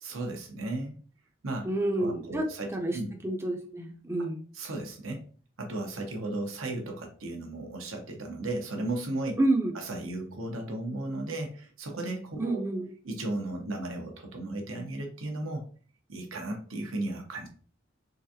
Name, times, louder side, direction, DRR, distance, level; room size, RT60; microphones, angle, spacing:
voice 1, 0.0-1.0 1.4-1.7 2.0-3.1 4.2-4.3 4.5-5.2 5.6-9.3 9.7-12.6 13.0-15.6 16.1-17.5, right 2 dB, 85° right, 2 dB, 0.9 m, -35 dB
voice 2, 1.6-2.4 2.7-3.0 3.2-4.4 9.4-9.7 12.4-12.9, right 2 dB, 10° right, 2 dB, 0.5 m, -28 dB
3.9 x 3.5 x 2.8 m, 0.43 s
head